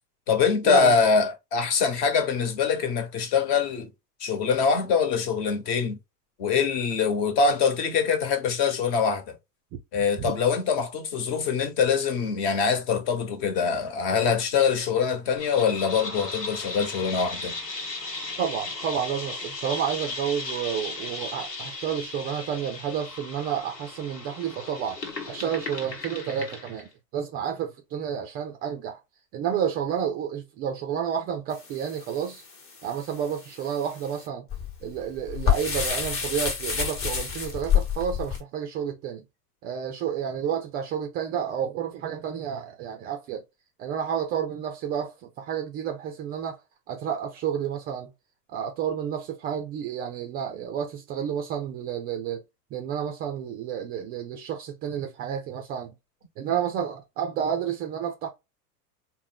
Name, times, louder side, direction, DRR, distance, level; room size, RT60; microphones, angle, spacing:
voice 1, 0.3-3.9 4.2-6.0 6.4-9.3 9.9-17.5, left 6 dB, 45° left, 1.2 m, -24 dB
sound 1, 15.4-26.9, left 3 dB, 80° left, 1.0 m, -36 dB
voice 2, 18.4-25.0 25.3-29.0 29.3-32.4 32.8-34.5 34.8-39.2 39.6-43.4 43.8-46.6 46.9-48.1 48.5-52.4 52.7-55.9 56.4-58.3, right 8 dB, 20° right, 0.4 m, -30 dB
sound 2, 31.5-38.4, left 8 dB, 25° left, 1.1 m, -29 dB
4.1 x 2.1 x 3.7 m
figure-of-eight pair, 85°, 48 cm